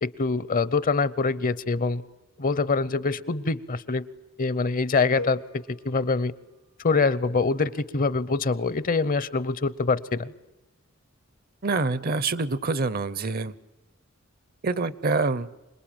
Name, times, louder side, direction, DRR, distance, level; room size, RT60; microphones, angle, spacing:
voice 1, 0.0-2.0 2.4-4.0 4.4-6.3 6.8-10.3, left 4 dB, 40° left, 18 dB, 0.8 m, -25 dB
sound 1, 5.2-7.2, left 2 dB, 85° left, 1.7 m, -42 dB
voice 2, 11.6-13.5 14.6-15.5, right 3 dB, 45° right, 18 dB, 0.8 m, -26 dB
26.5 x 20.0 x 8.9 m, 1.0 s
head